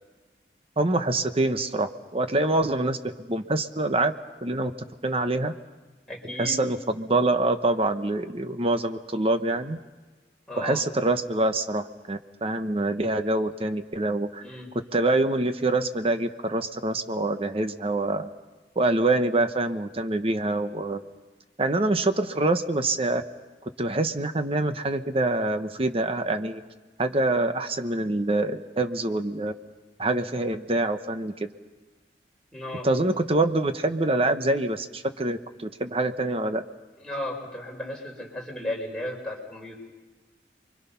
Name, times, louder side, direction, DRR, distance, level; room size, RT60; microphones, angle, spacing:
voice 1, 0.8-4.1 4.4-4.7 5.0-5.5 6.4-9.8 10.6-14.4 14.9-18.3 18.8-21.0 21.6-23.2 23.8-26.6 27.0-29.5 30.0-31.5 32.8-36.6, right 2 dB, 35° right, 8 dB, 1.0 m, -25 dB
voice 2, 6.1-6.6 10.5-10.8 14.4-14.7 32.5-32.9 37.0-39.8, left 1 dB, 5° left, -2 dB, 4.6 m, -34 dB
28.5 x 24.0 x 5.8 m, 1.2 s
head